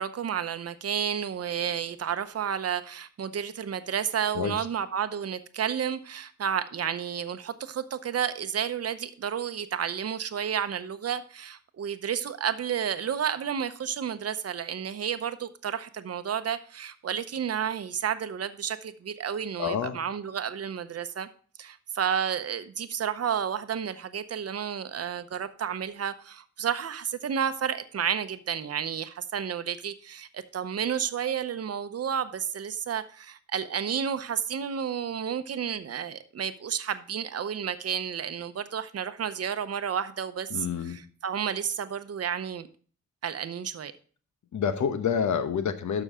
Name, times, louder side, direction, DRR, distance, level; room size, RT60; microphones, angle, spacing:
voice 1, 0.0-21.3 21.6-42.7 43.2-43.9, right 8 dB, 55° right, 0.8 m, -31 dB
voice 2, 19.6-20.0 40.5-41.0 44.5-46.0, left 7 dB, 80° left, 1.0 m, -28 dB
12.5 x 6.2 x 3.6 m
wide cardioid pair, 160°, 29 cm